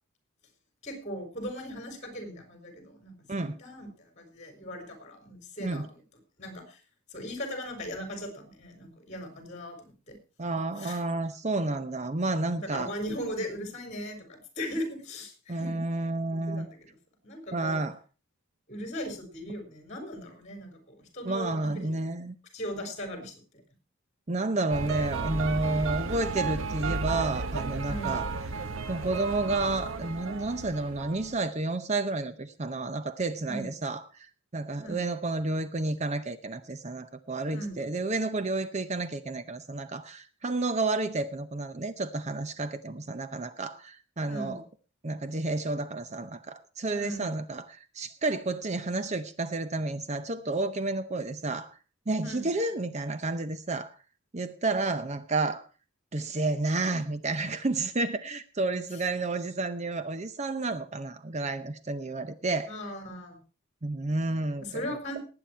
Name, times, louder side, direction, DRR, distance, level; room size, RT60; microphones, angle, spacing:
voice 1, 0.8-6.0 6.4-6.8 7.1-10.2 10.8-11.0 12.5-15.8 16.3-16.9 17.2-17.8 18.7-21.9 22.5-23.4 27.8-28.2 33.4-33.7 34.8-35.0 37.5-37.8 44.3-44.6 46.9-47.3 52.2-52.5 62.7-63.4 64.6-65.2, equal, 35° left, 6 dB, 4.5 m, -38 dB
voice 2, 10.4-12.9 15.5-16.7 17.5-18.0 21.2-22.3 24.3-28.3 28.9-34.3 34.5-44.6 45.0-51.7 52.1-53.9 54.3-55.7 56.1-62.7 63.8-64.8, right 2 dB, 35° right, 12 dB, 0.7 m, -31 dB
sound 1, 24.7-31.4, right 4 dB, 70° right, 1.0 m, -33 dB
19.0 x 8.9 x 4.4 m, 0.35 s
head